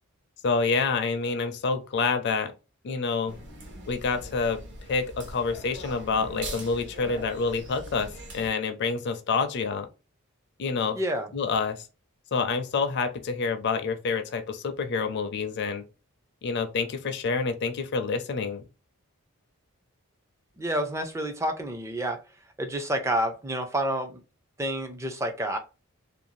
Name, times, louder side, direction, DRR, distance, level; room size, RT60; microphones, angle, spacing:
voice 1, 0.4-2.5 2.8-3.4 3.9-4.6 4.9-9.9 10.6-11.0 11.3-11.9 12.3-15.8 16.4-18.6, left 4 dB, 50° left, 0.4 m, -27 dB
sound 1, 3.3-8.5, right 1 dB, 50° right, 0.8 m, -41 dB
voice 2, 10.9-11.3 20.6-22.2 22.6-24.2 24.6-25.6, right 1 dB, 15° right, 0.4 m, -29 dB
2.6 x 2.3 x 3.0 m
head